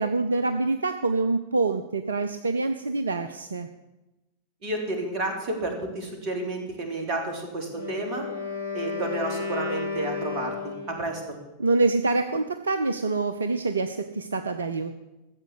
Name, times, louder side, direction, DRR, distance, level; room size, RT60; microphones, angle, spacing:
voice 1, 0.0-3.7 11.6-15.0, right 3 dB, 70° right, 9 dB, 0.7 m, -26 dB
voice 2, 4.6-8.2 8.7-11.4, right 2 dB, 40° right, 3 dB, 3.7 m, -31 dB
Wind instrument woodwind instrument, 7.7-11.2, left 4 dB, 85° left, 2.0 m, -33 dB
14.5 x 8.1 x 8.1 m, 1.0 s
figure-of-eight pair, 90°, 0 cm